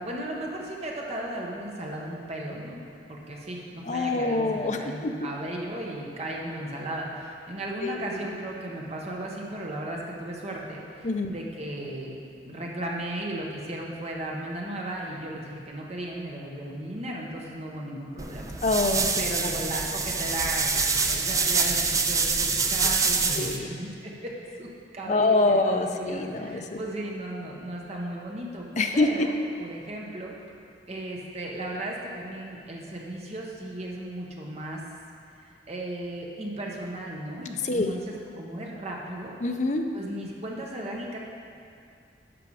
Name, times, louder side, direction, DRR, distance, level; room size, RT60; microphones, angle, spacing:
voice 1, 0.0-2.8 3.1-18.5 19.2-24.3 24.6-24.7 24.9-28.6 28.9-29.3 29.6-30.3 30.9-34.8 35.4-39.4 39.9-41.2, right 1 dB, 40° right, -2 dB, 1.3 m, -36 dB
voice 2, 3.8-5.1 7.8-8.2 11.0-11.3 18.6-19.6 23.4-23.7 25.1-26.8 28.8-29.3 37.6-37.9 39.4-39.8, left 2 dB, 40° left, 4 dB, 0.6 m, -25 dB
sound 1, 18.2-23.6, right 4 dB, 20° right, 0.4 m, -26 dB
11.0 x 5.9 x 4.9 m, 2.4 s
head